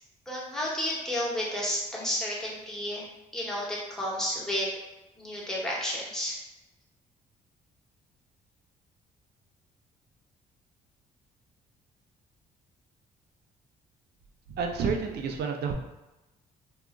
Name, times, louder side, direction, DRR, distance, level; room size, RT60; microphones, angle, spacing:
voice 1, 0.3-3.1 3.3-4.7 5.2-6.4, left 1 dB, 5° left, -5 dB, 1.1 m, -31 dB
voice 2, 14.5-15.7, right 5 dB, 65° right, 3 dB, 0.5 m, -29 dB
2.7 x 2.4 x 2.4 m, 1.0 s
supercardioid pair, 55°, 18 cm